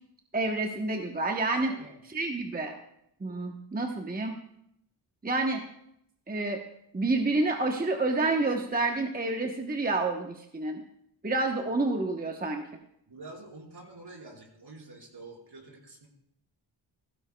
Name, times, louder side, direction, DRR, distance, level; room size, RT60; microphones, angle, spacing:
voice 1, 0.3-1.7 2.1-2.7 3.2-4.3 5.2-5.6 6.3-6.6 6.9-10.8 11.2-12.6, right 2 dB, 20° right, 3 dB, 1.0 m, -28 dB
voice 2, 1.5-2.0 13.1-16.1, right 2 dB, 60° right, -2 dB, 4.7 m, -47 dB
16.0 x 15.5 x 2.3 m, 0.75 s
cardioid pair, 70°, 46 cm